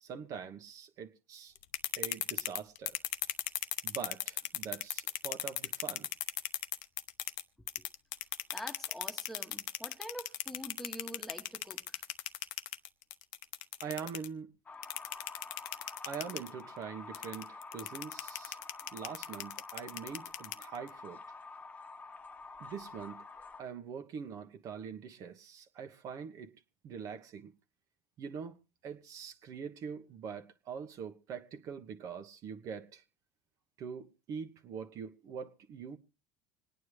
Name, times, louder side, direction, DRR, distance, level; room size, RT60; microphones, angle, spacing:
voice 1, 0.0-1.5 1.9-3.0 3.8-6.1 13.8-14.5 16.0-18.6 18.9-21.2 22.6-23.2 23.6-26.5 26.8-27.5 28.2-33.0 33.8-36.0, right 6 dB, 50° right, 1.3 m, -43 dB
sound 1, 1.6-7.4 7.7-14.3 14.8-16.5 17.1-20.9, left 15 dB, 70° left, 0.8 m, -36 dB
voice 2, 8.5-12.0, equal, 5° left, 1.5 m, -45 dB
sound 2, 14.7-23.6, left 4 dB, 20° left, 1.2 m, -49 dB
26.5 x 9.4 x 3.3 m
hypercardioid pair, 90°, 7 cm